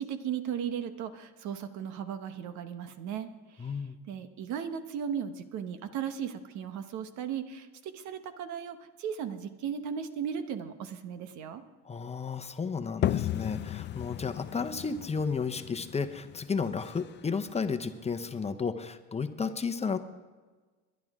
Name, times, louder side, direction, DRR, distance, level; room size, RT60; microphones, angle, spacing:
voice 1, 0.0-3.8 4.1-11.6, right 8 dB, 70° right, 10 dB, 1.2 m, -36 dB
voice 2, 3.6-4.0 11.8-20.0, left 5 dB, 20° left, 8 dB, 1.0 m, -33 dB
sound 1, 13.0-18.5, left 12 dB, 40° left, 0.4 m, -35 dB
22.5 x 10.5 x 3.7 m, 1.3 s
supercardioid pair, 100°, 30 cm